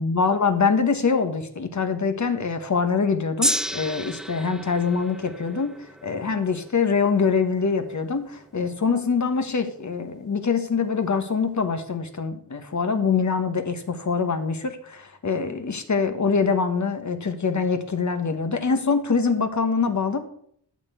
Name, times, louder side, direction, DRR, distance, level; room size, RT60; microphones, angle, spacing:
voice 1, 0.0-5.7 6.0-20.2, left 5 dB, 45° left, 8 dB, 1.2 m, -24 dB
Gong, 3.4-9.8 10.6-10.7, equal, ahead, 0.3 m, -33 dB
13.0 x 4.4 x 8.0 m, 0.67 s
wide cardioid pair, 105°, 40 cm